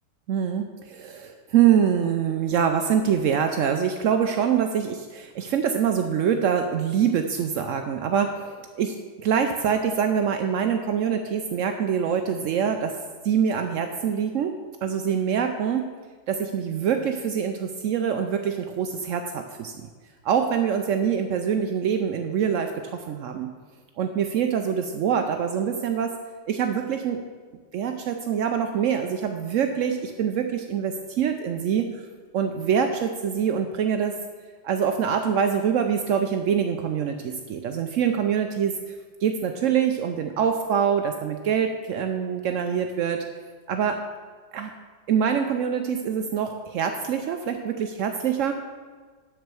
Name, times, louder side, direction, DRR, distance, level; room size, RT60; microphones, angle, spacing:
voice 1, 0.3-8.9 9.2-13.0 13.2-14.5 14.8-15.8 16.3-19.9 20.2-23.5 24.0-26.1 26.5-27.2 27.7-32.1 32.3-34.2 34.6-38.7 39.2-43.2 43.7-44.0 44.5-44.7 45.1-48.5, right 8 dB, 80° right, 5 dB, 0.7 m, -24 dB
7.8 x 6.4 x 6.8 m, 1.5 s
omnidirectional pair, 2.0 m